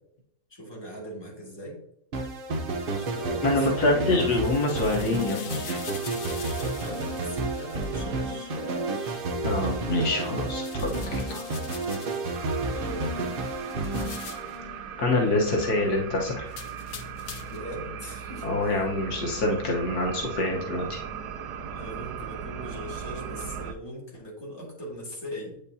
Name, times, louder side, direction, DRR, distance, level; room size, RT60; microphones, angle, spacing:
voice 1, 0.5-1.8 3.0-4.0 6.2-9.3 12.7-13.3 17.5-18.8 21.7-25.6, equal, 15° left, -4 dB, 2.2 m, -40 dB
sound 1, 2.1-15.1, right 2 dB, 45° right, 0.8 m, -31 dB
voice 2, 3.4-5.8 9.4-11.4 15.0-16.5 18.4-21.0, left 2 dB, 75° left, -1 dB, 1.7 m, -26 dB
sound 2, 3.9-8.1 10.4-12.3 13.7-14.6 16.5-17.7, left 7 dB, 60° left, 0.6 m, -43 dB
sound 3, 12.3-23.7, right 7 dB, 90° right, 1.2 m, -38 dB
8.4 x 5.2 x 2.7 m, 0.76 s
omnidirectional pair, 1.7 m